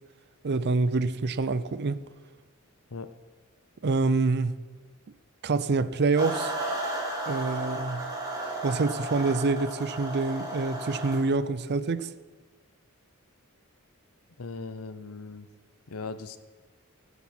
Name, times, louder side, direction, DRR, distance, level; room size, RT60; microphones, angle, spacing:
voice 1, 0.4-2.0 3.8-4.6 5.4-6.5 7.3-8.1 8.6-12.1, right 3 dB, 50° right, 0.5 m, -26 dB
sound 1, 6.2-11.2, right 1 dB, 20° right, 3.2 m, -33 dB
voice 2, 14.4-15.5 15.9-16.4, left 4 dB, 75° left, 0.8 m, -38 dB
18.0 x 8.3 x 4.5 m
head